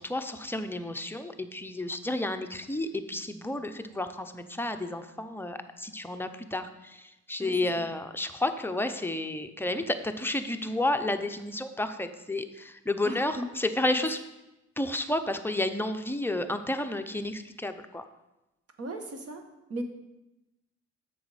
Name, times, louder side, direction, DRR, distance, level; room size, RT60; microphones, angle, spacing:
voice 1, 0.0-14.2 14.8-18.0, left 1 dB, 5° left, 7 dB, 0.6 m, -31 dB
voice 2, 13.0-13.4 18.8-19.4 19.7-19.8, right 1 dB, 50° right, 5 dB, 1.2 m, -36 dB
7.9 x 6.1 x 4.9 m, 0.97 s
cardioid pair, 90°, 30 cm